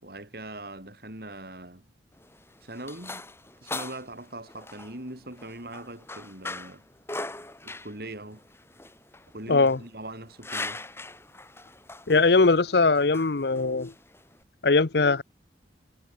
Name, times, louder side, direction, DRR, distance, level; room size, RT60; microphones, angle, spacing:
voice 1, 0.0-1.8 2.6-3.3 3.6-6.8 7.6-8.4 9.3-10.8, right 1 dB, 55° right, 5.2 m, -41 dB
sound 1, 2.1-14.4, left 2 dB, 15° left, 7.3 m, -41 dB
voice 2, 9.5-9.8 12.1-13.9 14.6-15.2, left 3 dB, 65° left, 0.8 m, -21 dB
head